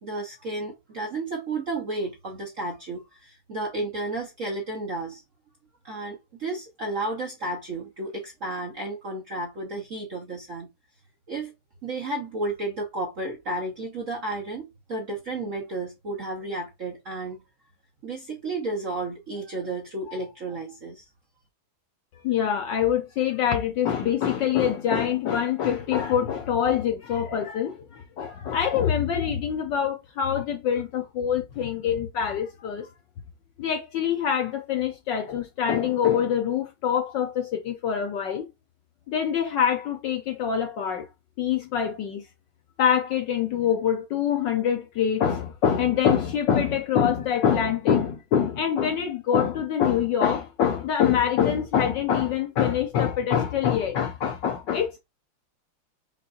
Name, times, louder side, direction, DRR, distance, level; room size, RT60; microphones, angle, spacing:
voice 1, 0.0-5.2 5.8-10.7 11.3-11.5 11.8-17.4 18.0-21.0, right 2 dB, 50° right, 1.0 m, -32 dB
voice 2, 22.2-32.9 33.6-38.5 39.1-41.1 41.4-42.2 42.8-55.0, left 8 dB, 70° left, 1.2 m, -25 dB
5.7 x 3.8 x 2.4 m
omnidirectional pair, 2.4 m